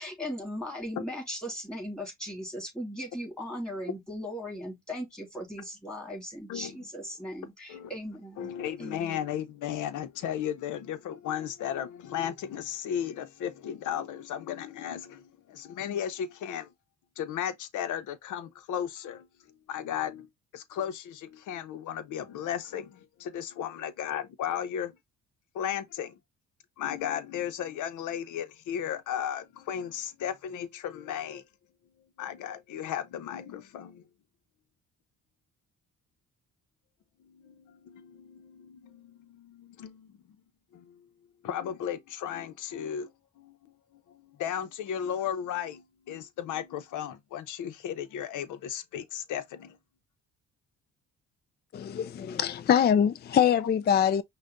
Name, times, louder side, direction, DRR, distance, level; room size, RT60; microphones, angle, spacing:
voice 1, 0.0-8.5 8.8-9.2, equal, 5° left, 2.9 m, -38 dB
voice 2, 8.4-16.7 17.2-19.3 19.7-20.3 20.5-25.0 25.5-26.2 26.8-31.4 32.2-34.0 37.2-40.4 40.7-41.1 41.4-49.8 53.6-53.7, left 9 dB, 80° left, 0.8 m, -35 dB
voice 3, 51.7-54.2, left 8 dB, 35° left, 0.4 m, -24 dB
5.6 x 2.3 x 3.8 m
cardioid pair, 90°, 30 cm